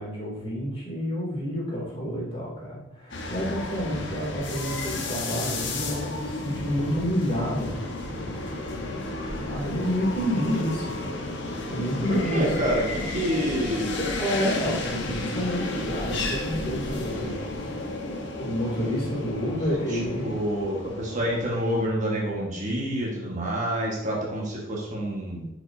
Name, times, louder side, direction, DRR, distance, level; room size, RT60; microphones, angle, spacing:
voice 1, 0.0-7.9 9.4-11.1 11.6-12.5 14.0-17.8 18.4-20.3, equal, 30° left, -4 dB, 2.6 m, -29 dB
sound 1, 3.1-21.9, left 2 dB, 60° left, 1.1 m, -33 dB
voice 2, 12.1-13.9 19.9-25.5, equal, 40° right, -3 dB, 1.4 m, -28 dB
10.5 x 5.1 x 2.7 m, 0.91 s
head